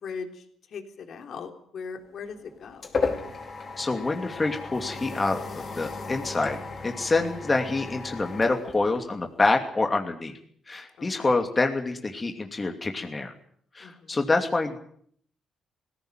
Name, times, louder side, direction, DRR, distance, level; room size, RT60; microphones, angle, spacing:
voice 1, 0.0-0.4 0.7-2.8 7.4-7.5 11.0-11.4 13.8-14.2, left 5 dB, 60° left, 5 dB, 3.6 m, -39 dB
sound 1, 2.1-9.5, left 4 dB, 45° left, 5.3 m, -35 dB
voice 2, 3.8-10.3 10.7-13.3 13.7-14.8, left 3 dB, 25° left, 4 dB, 2.7 m, -26 dB
19.5 x 17.0 x 9.2 m, 0.63 s
cardioid pair, 90°, 0 cm